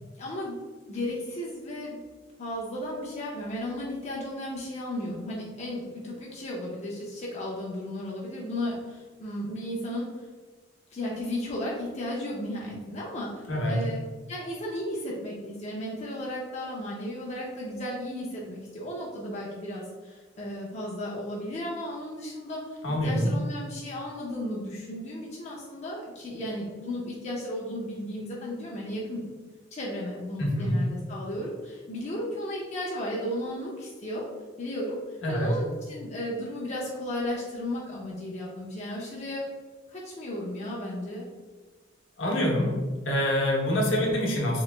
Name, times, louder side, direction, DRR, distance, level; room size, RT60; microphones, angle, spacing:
voice 1, 0.2-0.6 0.9-2.0 2.4-10.3 10.9-14.0 14.3-29.2 29.7-34.3 34.6-35.0 35.3-39.5 39.9-41.3, left 1 dB, 35° left, -4 dB, 0.5 m, -34 dB
voice 2, 22.8-23.3 30.4-30.8 35.2-35.5 42.2-42.8 43.0-44.6, equal, 70° left, -1 dB, 0.9 m, -25 dB
3.0 x 2.9 x 3.2 m, 1.4 s
head